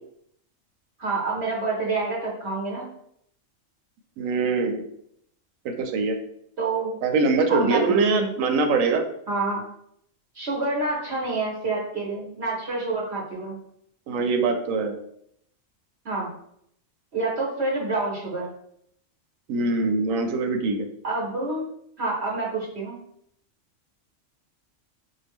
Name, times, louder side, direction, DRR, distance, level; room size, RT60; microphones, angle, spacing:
voice 1, 1.0-2.8 6.6-7.0 7.5-8.3 9.3-9.6 10.3-13.6 16.0-16.3 17.1-18.5 21.0-21.6 22.0-23.0, right 3 dB, 60° right, -3 dB, 1.1 m, -27 dB
voice 2, 4.2-4.8 5.6-6.2 7.0-9.0 14.1-15.0 19.5-20.9, right 4 dB, 90° right, 5 dB, 1.0 m, -23 dB
4.4 x 2.0 x 3.5 m, 0.71 s
omnidirectional pair, 1.3 m